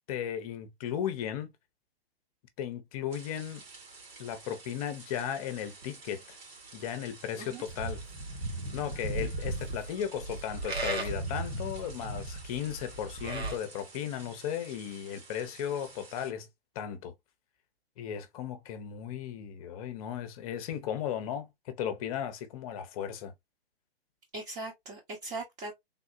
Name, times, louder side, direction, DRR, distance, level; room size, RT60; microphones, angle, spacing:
voice 1, 0.1-1.5 2.6-3.6 4.2-6.4 6.7-8.0 8.7-16.5 16.7-17.1 18.0-23.3, left 9 dB, 35° left, 0.8 m, -36 dB
sound 1, 3.1-16.3, right 3 dB, 70° right, 2.2 m, -51 dB
Livestock farm animals working animals, 7.7-13.6, right 2 dB, 85° right, 1.7 m, -36 dB
voice 2, 24.3-25.7, right 2 dB, 25° right, 1.1 m, -39 dB
3.6 x 2.3 x 2.6 m
hypercardioid pair, 125°, 31 cm